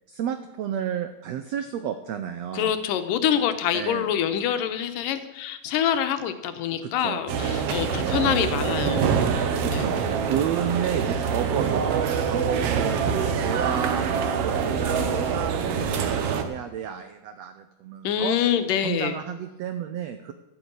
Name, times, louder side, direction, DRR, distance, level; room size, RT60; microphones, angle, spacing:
voice 1, 0.1-2.8 3.7-4.1 6.8-7.2 7.8-8.4 9.6-10.0 10.2-11.8 12.2-14.0 14.4-18.4 18.8-20.3, right 9 dB, 85° right, 9 dB, 1.5 m, -31 dB
voice 2, 2.5-9.9 18.0-19.2, left 9 dB, 85° left, 9 dB, 2.5 m, -26 dB
sound 1, 7.3-16.4, right 6 dB, 65° right, 1.6 m, -25 dB
12.5 x 9.2 x 8.0 m, 0.97 s
omnidirectional pair, 3.9 m